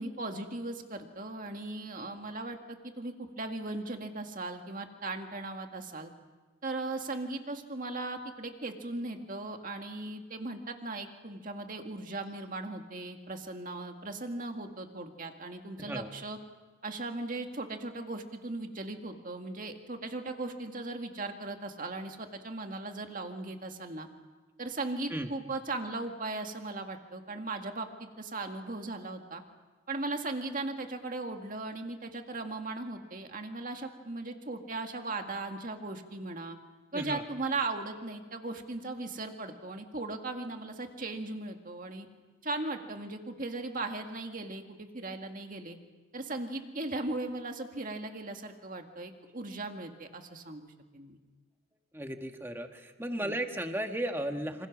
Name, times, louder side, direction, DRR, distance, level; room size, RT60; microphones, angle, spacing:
voice 1, 0.0-6.1 6.6-16.4 16.8-24.1 24.6-29.4 29.9-36.6 36.9-42.1 42.4-45.8 46.1-51.2 53.2-53.3, right 2 dB, 40° right, 4 dB, 2.0 m, -38 dB
voice 2, 15.8-16.1 25.1-25.3 36.9-37.2 51.9-54.7, right 1 dB, 10° right, 5 dB, 1.4 m, -35 dB
27.0 x 26.5 x 6.2 m, 1.3 s
head